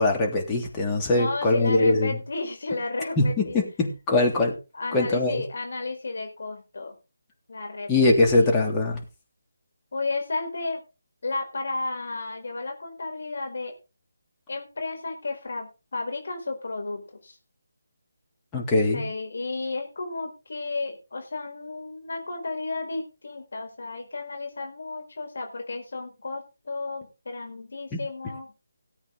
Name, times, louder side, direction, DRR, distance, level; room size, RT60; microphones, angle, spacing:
voice 1, 0.0-2.2 3.2-4.6 4.9-5.4 7.9-9.0 18.5-19.0 27.9-28.0, left 2 dB, 15° left, -1 dB, 3.2 m, -22 dB
voice 2, 1.1-3.6 4.7-6.9 7.5-8.5 9.9-10.8 11.2-13.7 14.5-17.4 18.9-28.5, left 3 dB, 60° left, 3 dB, 4.5 m, -33 dB
18.0 x 8.7 x 4.0 m, 0.29 s
figure-of-eight pair, 155°, 0 cm